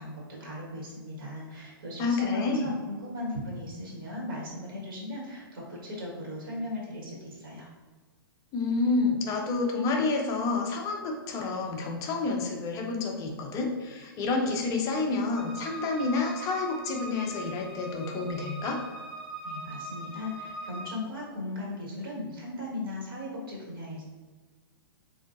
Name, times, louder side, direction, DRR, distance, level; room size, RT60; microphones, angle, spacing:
voice 1, 0.0-7.7 19.4-24.0, left 1 dB, 60° right, -4 dB, 1.5 m, -37 dB
voice 2, 2.0-2.7 8.5-18.8, left 3 dB, 25° left, 2 dB, 0.5 m, -29 dB
sound 1, 15.4-20.9, right 1 dB, 35° right, 0.7 m, -41 dB
3.6 x 2.6 x 2.5 m, 1.4 s
hypercardioid pair, 120°, 13 cm